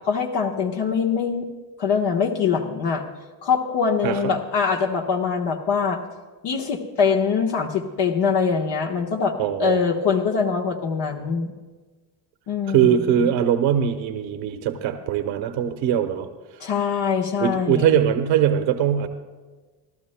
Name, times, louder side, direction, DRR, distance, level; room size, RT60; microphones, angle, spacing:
voice 1, 0.0-1.5 1.8-3.0 3.4-6.0 6.4-9.3 9.6-11.5 12.5-13.3 16.6-18.0, left 6 dB, 60° left, 1 dB, 1.3 m, -23 dB
voice 2, 4.0-4.3 9.4-9.8 12.7-16.3 17.4-19.1, right 9 dB, 80° right, 6 dB, 1.1 m, -21 dB
29.5 x 12.0 x 2.2 m, 1.3 s
supercardioid pair, 90°, 46 cm